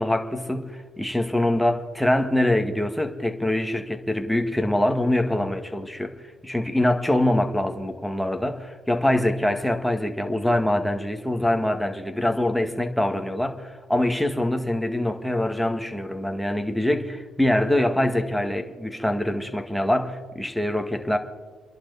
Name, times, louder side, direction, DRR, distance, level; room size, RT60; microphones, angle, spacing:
voice 1, 0.0-6.1 6.4-21.2, left 1 dB, ahead, 1.9 m, -24 dB
29.5 x 11.0 x 4.2 m
cardioid pair, 90°, 0 cm